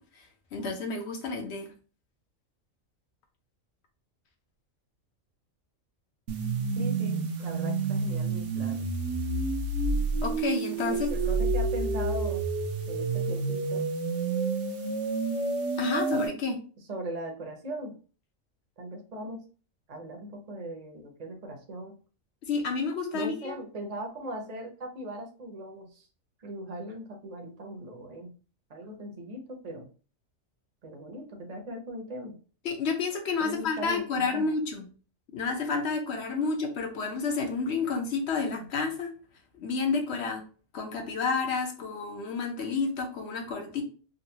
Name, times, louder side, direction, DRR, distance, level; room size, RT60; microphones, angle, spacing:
voice 1, 0.5-1.7 10.2-11.1 15.8-16.6 22.4-23.6 32.6-34.8 35.3-39.1 39.5-40.4 40.7-43.8, left 4 dB, 60° left, 3 dB, 1.0 m, -30 dB
sound 1, 6.3-16.3, right 3 dB, 65° right, 0.9 m, -29 dB
voice 2, 6.8-8.9 10.9-12.4 12.9-13.8 16.9-17.9 18.8-19.4 19.9-21.9 23.1-26.1 26.4-28.3 28.7-29.9 30.8-32.3 33.4-34.5 38.5-38.7, right 1 dB, 35° right, 2 dB, 0.7 m, -39 dB
3.9 x 2.3 x 2.7 m, 0.38 s
omnidirectional pair, 1.4 m